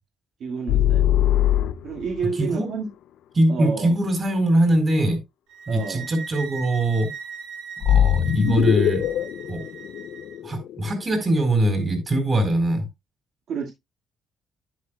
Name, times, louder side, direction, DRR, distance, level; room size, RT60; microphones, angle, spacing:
voice 1, 0.4-1.1 1.8-2.9 3.5-3.9 5.7-6.1 13.5-13.7, right 5 dB, 70° right, 1 dB, 1.8 m, -29 dB
sound 1, 0.7-2.2 7.8-10.9, left 11 dB, 80° left, 0.5 m, -21 dB
voice 2, 2.3-2.7 3.3-5.2 5.7-7.1 7.8-9.1 9.5-9.6 10.4-12.9, right 1 dB, 35° right, 7 dB, 4.5 m, -22 dB
sound 2, 5.5-10.4, right 6 dB, 90° right, 2.3 m, -39 dB
10.5 x 9.2 x 2.2 m, 0.20 s
cardioid pair, 90°, 0 cm